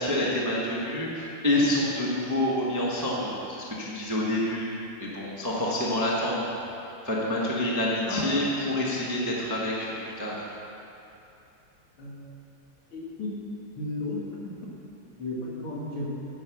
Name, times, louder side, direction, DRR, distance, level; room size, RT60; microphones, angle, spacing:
voice 1, 0.0-4.7 5.0-6.7 7.0-10.4, left 1 dB, 15° right, -5 dB, 0.7 m, -27 dB
voice 2, 12.9-13.3 13.8-14.2 15.2-16.1, left 2 dB, 70° left, -4 dB, 2.5 m, -33 dB
9.6 x 5.3 x 7.1 m, 2.8 s
omnidirectional pair, 2.4 m